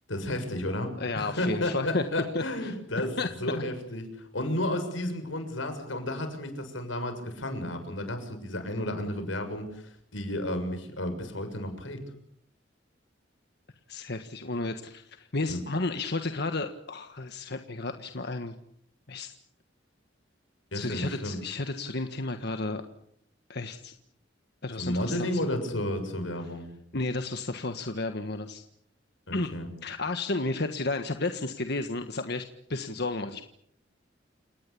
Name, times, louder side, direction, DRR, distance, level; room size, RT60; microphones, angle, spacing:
voice 1, 0.1-12.0 15.5-15.6 20.7-21.4 24.8-26.7 29.3-29.7, left 1 dB, 85° left, 7 dB, 6.9 m, -32 dB
voice 2, 1.0-2.0 2.4-2.7 3.2-3.3 13.9-18.5 19.1-19.4 20.7-22.8 23.5-23.9 24.6-25.4 26.9-28.6 29.3-29.5 29.8-33.4, left 2 dB, 60° left, 7 dB, 1.6 m, -32 dB
29.0 x 18.5 x 8.6 m, 0.72 s
head